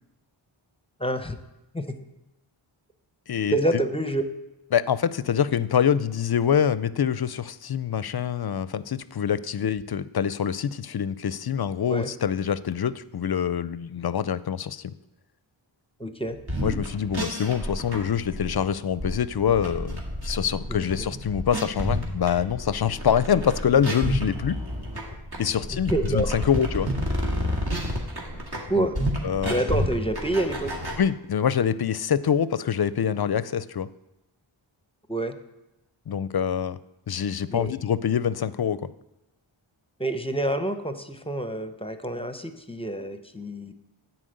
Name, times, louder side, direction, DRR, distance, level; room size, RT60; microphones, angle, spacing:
voice 1, 1.0-1.4 1.7-2.0 3.5-4.2 11.9-12.1 16.0-16.4 20.7-20.9 25.7-26.4 28.7-29.0 29.5-30.7 35.1-35.4 37.5-37.7 40.0-43.7, right 1 dB, 10° left, 8 dB, 0.8 m, -27 dB
voice 2, 3.3-3.6 4.7-14.9 16.6-24.6 25.4-26.9 28.8-28.9 29.2-29.6 31.0-33.9 36.1-36.8 37.1-38.8, left 8 dB, 50° left, 16 dB, 0.5 m, -25 dB
sound 1, 16.4-31.0, equal, 50° right, 2.2 m, -30 dB
10.0 x 4.5 x 7.8 m, 0.96 s
wide cardioid pair, 50°, 49 cm